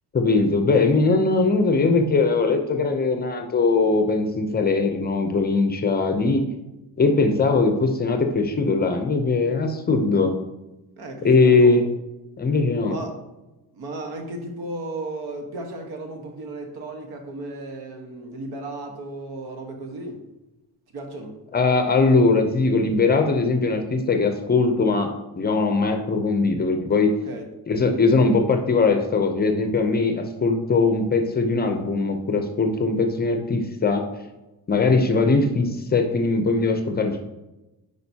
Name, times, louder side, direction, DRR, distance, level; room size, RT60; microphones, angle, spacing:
voice 1, 0.1-6.4 7.0-10.3 11.2-11.9 12.4-13.0 21.5-25.1 25.4-27.1 27.7-34.0 34.7-37.2, left 3 dB, 25° left, 6 dB, 0.5 m, -20 dB
voice 2, 11.0-11.8 12.9-13.2 13.7-20.2 20.9-21.3 27.2-27.5, right 2 dB, 75° right, 4 dB, 1.3 m, -34 dB
8.9 x 4.9 x 2.8 m, 1.0 s
cardioid pair, 160°, 39 cm